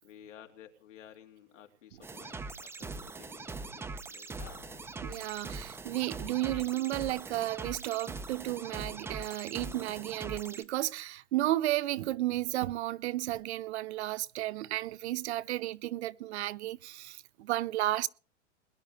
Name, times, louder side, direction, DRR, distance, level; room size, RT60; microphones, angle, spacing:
voice 1, 0.0-4.4, left 9 dB, 90° left, 3.2 m, -54 dB
sound 1, 2.0-10.6, right 3 dB, 5° right, 0.7 m, -42 dB
sound 2, 4.2-5.9, left 14 dB, 55° left, 2.4 m, -55 dB
voice 2, 5.0-18.1, right 15 dB, 65° right, 0.9 m, -33 dB
21.5 x 11.0 x 3.7 m
hypercardioid pair, 140°, 36 cm